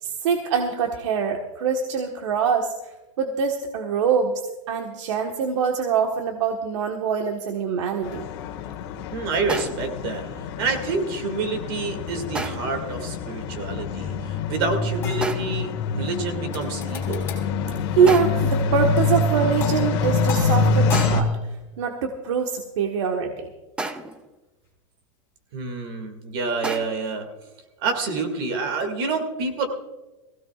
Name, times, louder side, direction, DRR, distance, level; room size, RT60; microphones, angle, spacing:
voice 1, 0.0-4.4 4.7-8.3 17.7-21.3 21.8-23.5, right 6 dB, 70° right, 3 dB, 1.4 m, -24 dB
sound 1, 8.0-21.2, left 4 dB, 50° left, 1.8 m, -26 dB
voice 2, 9.1-17.3 25.5-27.3 27.8-29.7, right 4 dB, 50° right, 6 dB, 2.3 m, -28 dB
sound 2, 9.5-10.0 12.4-12.9 15.2-15.7 18.1-18.6 20.9-21.4 23.8-24.3 26.6-26.9, right 2 dB, 5° right, 0.5 m, -32 dB
sound 3, 15.0-15.9 16.5-17.5 19.0-19.3 19.6-20.0 20.3-21.5 24.1-24.2, left 6 dB, 15° left, 3.9 m, -37 dB
21.5 x 16.5 x 2.4 m, 1.1 s
supercardioid pair, 170°, 16 cm